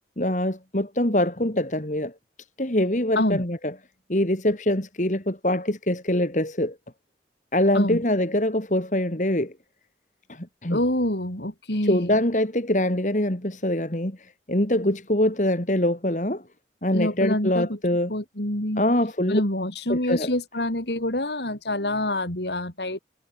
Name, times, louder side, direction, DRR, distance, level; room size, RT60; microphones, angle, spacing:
voice 1, 0.2-2.1 2.6-3.7 4.1-6.7 7.5-9.5 10.3-10.8 11.8-16.4 16.8-18.1 18.8-19.4 19.9-20.3, left 1 dB, 45° left, 2.7 m, -24 dB
voice 2, 10.7-12.2 16.9-17.8 18.1-18.8 19.3-23.0, left 1 dB, 75° left, 5.6 m, -26 dB
head